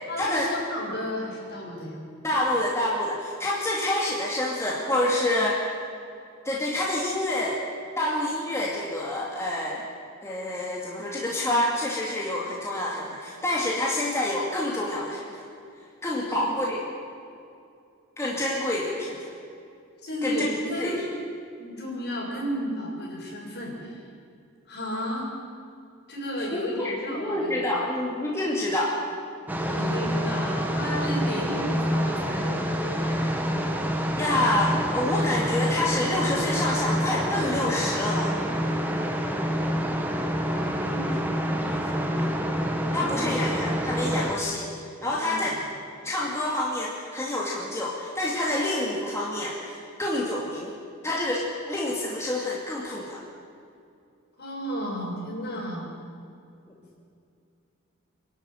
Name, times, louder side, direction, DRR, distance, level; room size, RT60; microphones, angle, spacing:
voice 1, 0.1-2.0 16.3-16.5 20.0-21.1 21.6-24.0 24.7-25.3 26.1-27.7 29.6-33.3 40.5-42.3 42.8-43.5 45.1-45.6 54.4-55.9, equal, 55° left, -3 dB, 6.8 m, -33 dB
voice 2, 2.2-5.6 6.4-7.6 8.0-9.8 10.2-15.3 16.0-16.8 18.2-19.2 20.2-21.0 26.5-28.9 34.1-38.4 42.9-44.7 45.0-45.6 46.0-50.7 51.0-53.2, left 1 dB, 15° left, -4 dB, 2.4 m, -27 dB
sound 1, 29.5-44.3, equal, 10° right, 1.6 m, -27 dB
26.5 x 11.5 x 9.1 m, 2.4 s
head